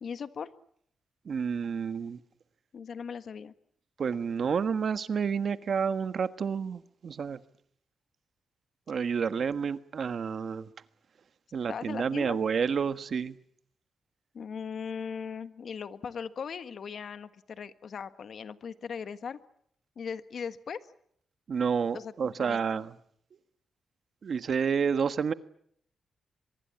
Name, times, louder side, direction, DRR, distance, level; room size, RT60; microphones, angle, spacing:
voice 1, 0.0-0.5 2.7-3.5 11.7-12.4 14.3-19.4 19.9-20.8 21.9-22.1 22.4-22.6, left 6 dB, 65° left, 1.5 m, -38 dB
voice 2, 1.2-2.2 4.0-7.4 8.9-10.7 11.5-13.4 21.5-22.9 24.2-25.3, right 6 dB, 60° right, 1.4 m, -29 dB
24.5 x 22.5 x 8.7 m
cardioid pair, 85°, 0 cm